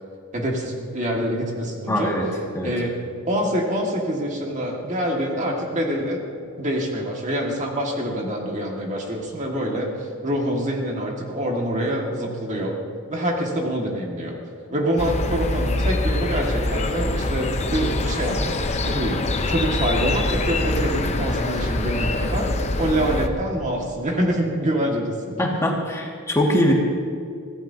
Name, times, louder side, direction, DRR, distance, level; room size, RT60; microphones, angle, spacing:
voice 1, 0.3-2.1 2.6-3.0 3.3-6.2 6.6-12.8 13.1-14.4 14.7-19.2 19.5-22.5 22.8-25.3, right 1 dB, 35° right, -1 dB, 1.9 m, -25 dB
voice 2, 1.9-2.3 2.5-2.7 25.4-26.7, left 1 dB, 15° left, -2 dB, 1.9 m, -22 dB
sound 1, 15.0-23.3, left 2 dB, 30° left, 0.8 m, -24 dB
23.0 x 15.5 x 2.8 m, 2.3 s
head